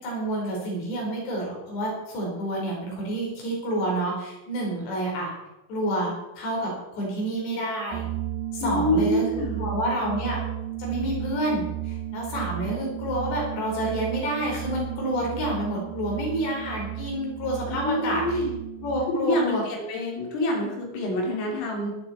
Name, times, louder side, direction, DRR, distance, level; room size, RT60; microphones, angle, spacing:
voice 1, 0.0-5.3 5.7-8.1 8.5-9.2 9.6-10.4 10.8-18.4 18.8-19.6, right 1 dB, 60° left, -2 dB, 6.5 m, -29 dB
sound 1, 7.9-19.1, right 13 dB, 85° right, 2.1 m, -34 dB
voice 2, 8.6-9.7 17.7-18.6 19.2-21.9, left 1 dB, 80° left, -1 dB, 5.9 m, -26 dB
16.5 x 13.0 x 4.4 m, 1.0 s
omnidirectional pair, 5.8 m